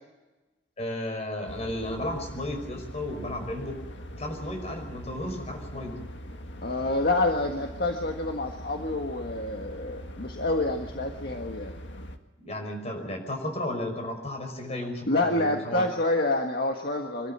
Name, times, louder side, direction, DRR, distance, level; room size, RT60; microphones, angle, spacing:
voice 1, 0.8-3.8 4.1-6.0 12.4-15.9, left 1 dB, 40° left, 4 dB, 5.4 m, -34 dB
sound 1, 1.5-12.2, equal, 80° left, 1.9 m, -41 dB
voice 2, 6.6-11.7 15.1-17.3, left 2 dB, 60° left, 3 dB, 1.7 m, -27 dB
25.5 x 13.0 x 8.8 m, 1.1 s
head